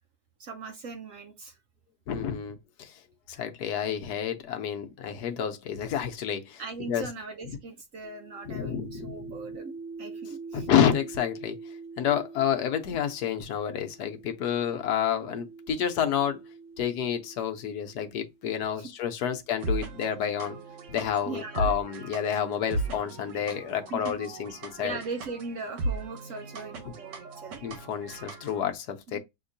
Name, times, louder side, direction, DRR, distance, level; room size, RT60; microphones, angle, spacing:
voice 1, 0.4-1.6 6.6-10.7 18.8-18.9 21.3-21.7 23.9-24.1 24.8-27.6 29.1-29.2, right 4 dB, 65° right, 0.9 m, -39 dB
voice 2, 2.1-2.9 3.3-6.6 6.9-7.1 8.5-9.2 10.5-11.6 12.0-16.4 16.8-20.6 20.9-25.0 27.6-29.2, left 9 dB, 75° left, 1.2 m, -29 dB
sound 1, 8.0-18.4 19.3-23.0, right 4 dB, 30° left, 0.9 m, -46 dB
sound 2, 19.6-28.6, right 2 dB, 85° right, 1.6 m, -36 dB
6.1 x 2.9 x 2.6 m
omnidirectional pair, 1.8 m